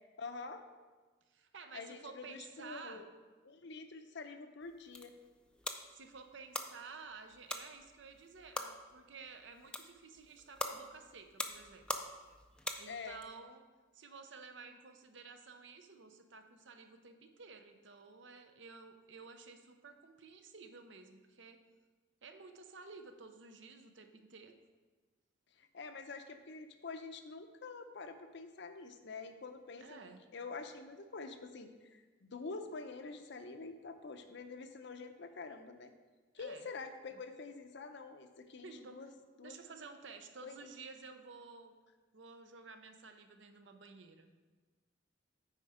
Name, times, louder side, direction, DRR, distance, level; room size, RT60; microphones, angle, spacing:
voice 1, 0.2-0.6 1.7-3.1 3.4-5.1 12.9-13.2 25.6-35.9 36.3-39.1 39.4-39.6 40.4-40.6, left 4 dB, 60° left, 7 dB, 0.6 m, -47 dB
voice 2, 1.3-3.1 5.9-11.9 12.8-13.6 13.9-21.6 22.2-24.5 29.8-30.2 36.3-36.7 37.1-37.2 38.6-39.1 39.4-41.7 42.1-44.3, right 4 dB, 65° right, 7 dB, 0.7 m, -53 dB
sound 1, 4.6-13.3, left 1 dB, 5° left, 0.4 m, -45 dB
9.1 x 4.4 x 4.9 m, 1.3 s
head